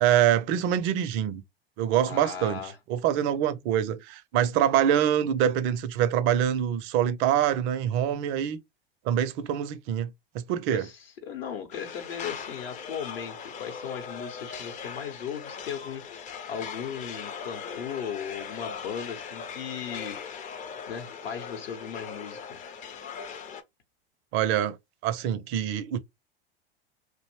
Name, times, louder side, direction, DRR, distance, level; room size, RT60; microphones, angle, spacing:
voice 1, 0.0-1.4 1.8-2.6 2.9-8.6 9.1-10.9 24.3-24.8 25.0-26.0, right 10 dB, 40° right, 0.4 m, -25 dB
voice 2, 2.0-2.8 10.7-20.2 20.9-22.6, left 7 dB, 70° left, 0.8 m, -37 dB
sound 1, 11.7-23.6, left 6 dB, 25° left, 0.4 m, -40 dB
2.5 x 2.0 x 3.0 m
hypercardioid pair, 90°, 31 cm